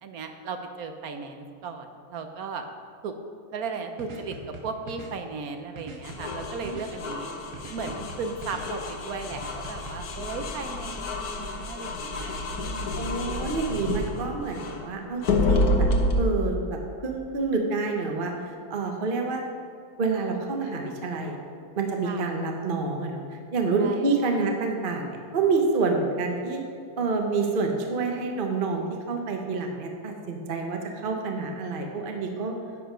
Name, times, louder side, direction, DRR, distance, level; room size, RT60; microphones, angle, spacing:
voice 1, 0.0-2.7 3.0-3.1 3.5-4.4 4.6-7.3 7.7-13.0 13.5-13.7 22.0-22.3 23.8-24.4, right 4 dB, 60° right, 6 dB, 1.1 m, -36 dB
sound 1, 4.0-5.1 5.8-6.9 7.5-8.6 9.3-9.9, right 2 dB, 80° right, 2.0 m, -42 dB
sound 2, 6.0-14.8 15.2-16.3, left 2 dB, 60° left, 1.4 m, -29 dB
voice 2, 13.0-15.9 16.2-18.3 18.7-19.4 20.0-21.4 21.8-23.2 23.5-26.6 27.0-32.5, right 4 dB, 40° right, 3 dB, 0.9 m, -28 dB
11.0 x 7.9 x 5.0 m, 2.3 s
omnidirectional pair, 2.0 m